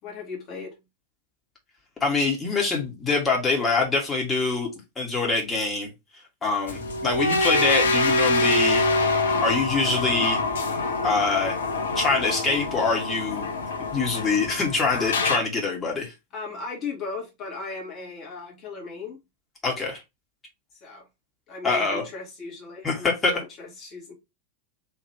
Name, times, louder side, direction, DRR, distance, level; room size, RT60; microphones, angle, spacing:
voice 1, 0.0-0.7 16.3-19.2 20.7-21.1 21.5-24.1, left 4 dB, 35° left, 1.6 m, -37 dB
voice 2, 2.0-4.7 5.0-5.9 6.4-8.8 9.4-10.4 11.0-11.6 12.0-13.5 13.9-16.1 19.6-20.0 21.6-22.0 22.8-23.4, left 3 dB, 15° left, 1.7 m, -24 dB
sound 1, 6.7-15.4, left 2 dB, 65° left, 0.7 m, -25 dB
3.3 x 3.1 x 4.5 m
figure-of-eight pair, 90°, 0 cm